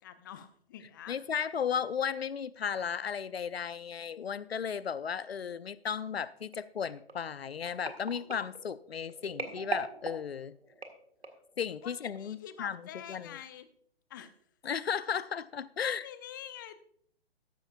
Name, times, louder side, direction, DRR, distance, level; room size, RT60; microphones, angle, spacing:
voice 1, 0.0-1.2 11.8-13.7 14.1-14.4 15.8-16.7, left 10 dB, 20° left, 12 dB, 0.5 m, -46 dB
voice 2, 1.1-10.6 11.6-12.8 13.1-13.4 14.6-16.0, left 7 dB, 75° left, 18 dB, 0.6 m, -35 dB
sound 1, 6.5-11.6 12.2-12.4 12.7-12.8, right 4 dB, 75° right, 1.7 m, -42 dB
13.5 x 11.0 x 2.5 m, 0.62 s
figure-of-eight pair, 130°, 31 cm